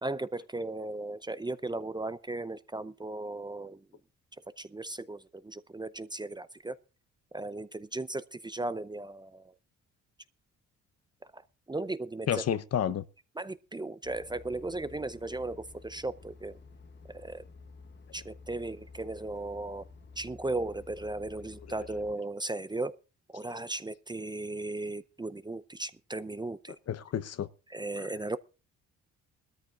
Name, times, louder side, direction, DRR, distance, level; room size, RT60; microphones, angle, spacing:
voice 1, 0.0-3.8 4.6-6.7 7.3-9.4 11.3-11.4 11.7-12.4 13.4-16.6 17.1-17.4 18.1-19.8 20.2-23.0 23.3-26.8 27.7-28.4, right 2 dB, 15° right, 0.6 m, -36 dB
voice 2, 12.3-13.0 26.9-27.5 28.0-28.1, left 9 dB, 55° left, 0.9 m, -30 dB
sound 1, 14.0-22.1, left 4 dB, 35° left, 1.2 m, -51 dB
20.5 x 13.5 x 2.5 m
cardioid pair, 90°, 30 cm